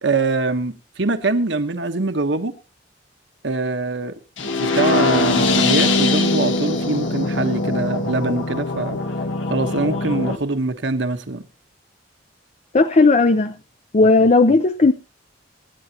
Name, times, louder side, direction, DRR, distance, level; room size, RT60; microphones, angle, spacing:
voice 1, 0.0-2.5 3.4-4.1 4.5-9.0 9.5-11.5, right 3 dB, 70° right, 1.2 m, -23 dB
sound 1, 4.4-10.4, left 2 dB, 90° left, 1.7 m, -21 dB
voice 2, 12.7-13.6 13.9-14.9, left 3 dB, 40° left, 0.6 m, -15 dB
24.5 x 10.0 x 2.9 m
head